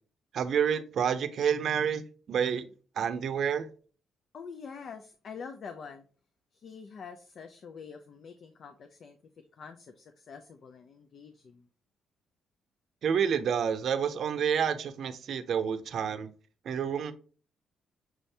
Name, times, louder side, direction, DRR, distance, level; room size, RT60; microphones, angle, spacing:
voice 1, 0.3-2.7 3.0-3.7 13.0-16.3 16.7-17.1, right 7 dB, 60° right, 0.5 m, -29 dB
voice 2, 4.3-6.1 6.5-9.2 9.5-11.7, left 6 dB, 55° left, 0.5 m, -46 dB
6.1 x 2.7 x 3.2 m
cardioid pair, 90°, 0 cm